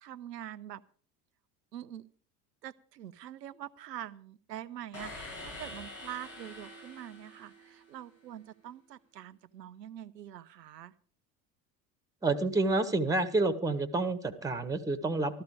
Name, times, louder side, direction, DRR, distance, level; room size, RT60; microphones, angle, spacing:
voice 1, 0.0-0.8 1.7-2.0 2.6-10.9, right 11 dB, 75° right, 15 dB, 0.7 m, -44 dB
sound 1, 4.9-8.1, left 1 dB, 80° left, 7.0 m, -46 dB
voice 2, 12.2-15.4, right 2 dB, 5° right, 13 dB, 1.3 m, -29 dB
13.5 x 13.0 x 4.9 m, 0.43 s
figure-of-eight pair, 65°, 49 cm